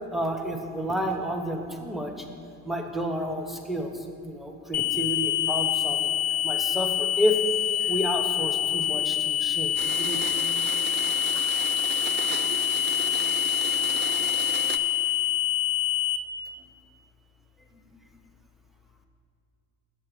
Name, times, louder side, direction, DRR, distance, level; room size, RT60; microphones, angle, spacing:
voice 1, 0.1-2.2 2.6-6.1 6.4-7.4 7.8-10.2 17.7-18.0, equal, ahead, 3 dB, 0.8 m, -30 dB
sound 1, 4.7-16.2, left 12 dB, 45° left, 0.5 m, -26 dB
Domestic sounds home sounds, 9.8-14.8, right 6 dB, 25° right, 0.4 m, -34 dB
6.7 x 6.5 x 5.0 m, 2.5 s
supercardioid pair, 75°, 41 cm